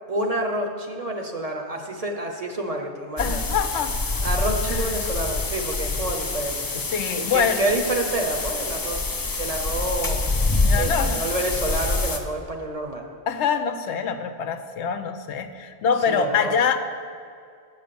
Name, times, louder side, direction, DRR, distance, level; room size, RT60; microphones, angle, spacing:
voice 1, 0.1-3.4 4.2-6.8 7.2-9.0 9.4-10.2 10.7-13.0 16.1-16.5, right 1 dB, 40° right, 2 dB, 0.7 m, -28 dB
voice 2, 3.2-4.0 4.7-5.1 6.7-7.7 10.5-11.2 13.3-16.8, left 6 dB, 80° left, 8 dB, 0.9 m, -25 dB
sound 1, 3.2-12.2, left 3 dB, 35° left, 0.3 m, -26 dB
8.1 x 5.6 x 6.8 m, 2.3 s
omnidirectional pair, 1.2 m